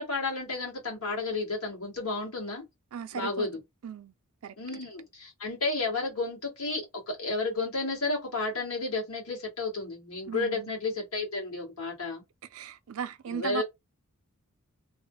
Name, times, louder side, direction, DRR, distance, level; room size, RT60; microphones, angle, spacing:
voice 1, 0.0-2.6 3.1-3.6 4.6-12.2 13.3-13.6, left 3 dB, 75° left, 2.0 m, -32 dB
voice 2, 2.9-3.5 3.8-4.1 4.4-4.5 10.3-10.7 12.5-13.6, right 7 dB, 70° right, 0.4 m, -37 dB
3.2 x 2.1 x 3.8 m
head